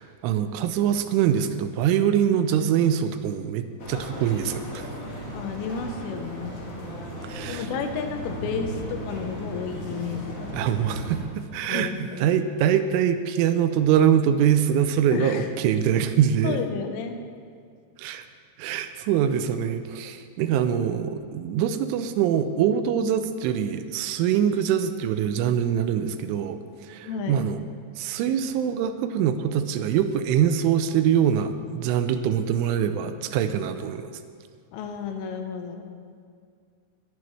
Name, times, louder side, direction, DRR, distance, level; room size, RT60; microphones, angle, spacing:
voice 1, 0.0-4.9 7.2-7.7 10.5-16.6 18.0-18.2 18.6-27.6 28.0-34.1, right 9 dB, 85° right, 9 dB, 3.1 m, -24 dB
sound 1, 3.8-11.2, right 1 dB, 45° left, 2.1 m, -36 dB
voice 2, 5.3-6.6 7.5-10.6 11.7-12.4 15.1-15.5 16.1-17.2 27.0-27.5 34.7-35.9, left 5 dB, 85° left, 6 dB, 3.5 m, -32 dB
22.0 x 11.0 x 3.2 m, 2.2 s
omnidirectional pair, 5.6 m